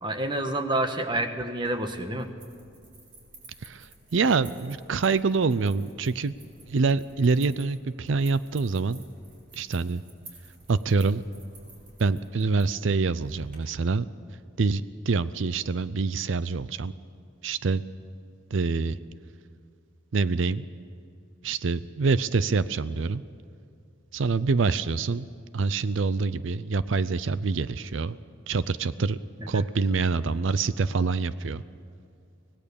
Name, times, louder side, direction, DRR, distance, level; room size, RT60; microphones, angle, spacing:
voice 1, 0.0-2.3 29.5-29.6, right 1 dB, 20° right, 6 dB, 1.2 m, -28 dB
sound 1, 1.5-13.6, right 2 dB, 40° right, 4.8 m, -53 dB
voice 2, 3.6-6.3 6.7-9.0 9.5-10.0 10.7-11.2 12.0-14.0 14.6-16.9 17.4-17.8 18.5-19.0 20.1-20.7 21.4-23.2 24.1-25.3 25.5-28.2 28.5-29.2 29.5-31.6, right 4 dB, 70° right, 16 dB, 0.5 m, -26 dB
25.0 x 18.0 x 6.9 m, 2.3 s
head